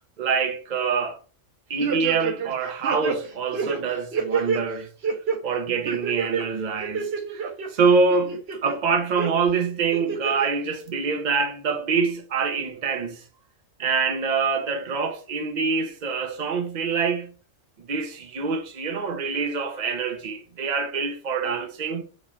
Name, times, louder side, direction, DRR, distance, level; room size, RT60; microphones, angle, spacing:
voice 1, 0.2-1.2 1.7-4.9 5.4-13.2 13.8-17.3 17.8-22.0, right 5 dB, 40° right, 0.7 m, -25 dB
sound 1, 1.8-2.5 2.8-4.6 5.0-5.4 5.9-6.4 6.8-7.7 8.1-8.7 9.2-9.3 9.9-10.5 10.9-11.0, right 6 dB, 60° right, 1.0 m, -28 dB
3.8 x 3.1 x 4.3 m
omnidirectional pair, 1.3 m